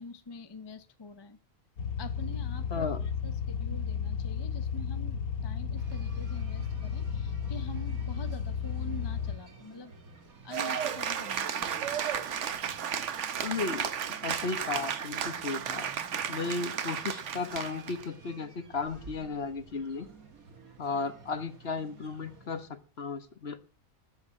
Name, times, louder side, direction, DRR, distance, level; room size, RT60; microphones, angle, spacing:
voice 1, 0.0-1.4 2.0-2.8 3.2-9.9 10.4-11.8, left 2 dB, 20° left, 9 dB, 0.8 m, -45 dB
sound 1, 1.8-9.4, left 7 dB, 80° left, 1.8 m, -33 dB
voice 2, 2.7-3.0 13.4-13.9 14.2-15.8 16.3-20.1 20.8-23.6, left 4 dB, 45° left, 10 dB, 1.4 m, -35 dB
sound 2, 5.8-22.7, right 4 dB, 75° right, 2.5 m, -52 dB
Cheering / Applause, 10.5-18.0, right 8 dB, 60° right, 1.2 m, -33 dB
13.5 x 8.4 x 7.8 m, 0.40 s
omnidirectional pair, 1.5 m